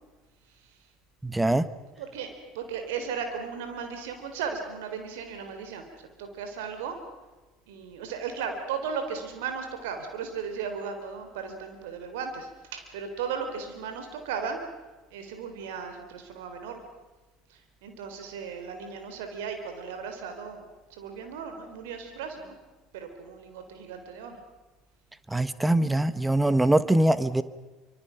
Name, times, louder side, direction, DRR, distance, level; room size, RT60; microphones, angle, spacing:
voice 1, 1.2-1.7 25.3-27.4, right 1 dB, 10° right, 15 dB, 1.3 m, -23 dB
voice 2, 2.0-2.3 2.5-7.0 7.7-14.6 15.1-16.8 17.5-22.6 22.9-24.4, right 6 dB, 70° right, 6 dB, 3.9 m, -36 dB
26.0 x 25.0 x 5.9 m, 1.2 s
figure-of-eight pair, 65°, 0 cm